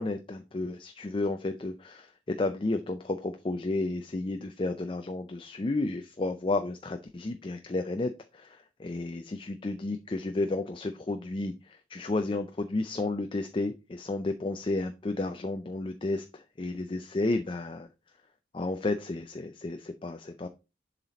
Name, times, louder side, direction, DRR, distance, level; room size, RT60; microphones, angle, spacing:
voice 1, 0.0-17.9 18.5-20.5, left 2 dB, 25° left, 7 dB, 0.4 m, -32 dB
7.3 x 4.0 x 4.0 m, 0.28 s
head